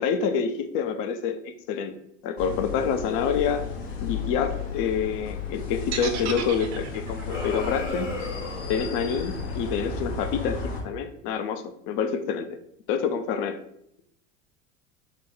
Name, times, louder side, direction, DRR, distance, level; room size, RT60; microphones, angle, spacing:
voice 1, 0.0-1.9 2.2-3.7 4.0-8.1 8.7-12.6 12.9-13.6, left 6 dB, 35° left, 8 dB, 0.4 m, -27 dB
sound 1, 2.4-10.8, left 5 dB, 55° left, 0.9 m, -34 dB
sound 2, 5.9-10.0, right 7 dB, 55° right, 0.6 m, -36 dB
sound 3, 7.3-9.4, left 2 dB, 85° left, 0.8 m, -35 dB
3.6 x 2.2 x 3.7 m, 0.75 s
figure-of-eight pair, 70°, 37 cm